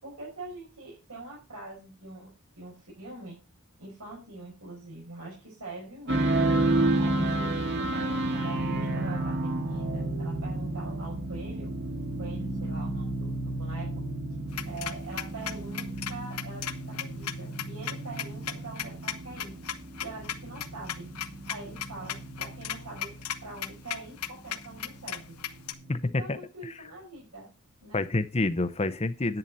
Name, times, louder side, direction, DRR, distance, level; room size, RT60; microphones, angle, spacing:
voice 1, 0.0-3.4 3.8-6.5 7.0-11.7 12.2-14.0 14.6-19.5 20.0-21.1 21.5-23.1 23.4-25.4 26.2-27.5 27.8-28.0, right 2 dB, 85° right, -5 dB, 5.6 m, -43 dB
sound 1, 6.1-26.0, right 2 dB, 50° right, 2.0 m, -31 dB
sound 2, 14.5-25.7, left 10 dB, 90° left, 1.0 m, -36 dB
voice 2, 25.9-26.4 27.9-29.4, left 2 dB, 30° left, 11 dB, 0.7 m, -28 dB
10.5 x 9.1 x 4.1 m, 0.31 s
head